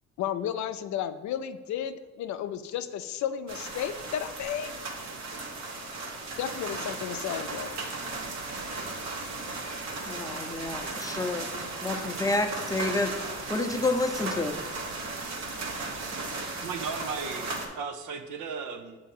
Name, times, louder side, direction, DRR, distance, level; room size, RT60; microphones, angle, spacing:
voice 1, 0.2-4.7 6.4-7.8, left 9 dB, 70° left, 10 dB, 0.5 m, -33 dB
sound 1, 3.5-17.7, right 3 dB, 65° right, 1.1 m, -36 dB
voice 2, 10.1-11.5 11.8-13.1 13.5-14.6, left 2 dB, 10° left, 5 dB, 0.6 m, -29 dB
voice 3, 16.6-19.0, right 5 dB, 80° right, 6 dB, 0.7 m, -36 dB
7.3 x 2.8 x 5.3 m, 1.3 s
cardioid pair, 90°, 30 cm